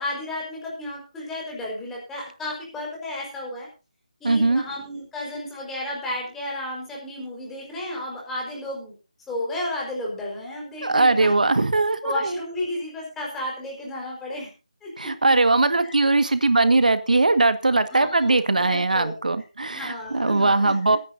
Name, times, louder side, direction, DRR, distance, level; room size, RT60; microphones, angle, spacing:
voice 1, 0.0-3.7 4.2-8.9 9.3-11.3 12.0-14.5 14.8-15.1 15.8-15.9 17.9-19.1 19.7-21.0, left 1 dB, 5° left, -3 dB, 4.6 m, -33 dB
voice 2, 4.2-4.6 10.8-12.4 15.0-21.0, right 3 dB, 80° right, 11 dB, 1.6 m, -20 dB
22.5 x 10.5 x 2.7 m, 0.31 s
figure-of-eight pair, 165°, 4 cm